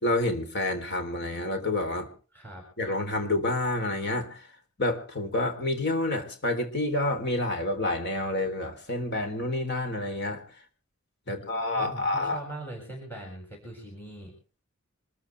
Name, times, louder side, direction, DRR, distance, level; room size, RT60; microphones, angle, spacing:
voice 1, 0.0-2.1 2.8-4.4 4.8-10.4 11.3-12.4, left 2 dB, 55° left, 5 dB, 3.8 m, -28 dB
voice 2, 2.3-2.6 11.3-14.3, right 1 dB, 10° left, 0 dB, 6.9 m, -41 dB
26.0 x 14.5 x 3.5 m, 0.38 s
head